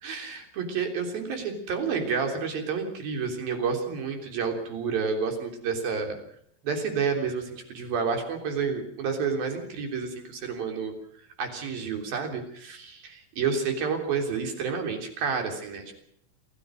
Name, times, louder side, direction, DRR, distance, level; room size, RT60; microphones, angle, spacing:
voice 1, 0.0-6.2 6.6-10.9 11.4-16.0, right 5 dB, 60° right, 5 dB, 5.1 m, -30 dB
27.0 x 16.5 x 6.4 m, 0.66 s
omnidirectional pair, 4.8 m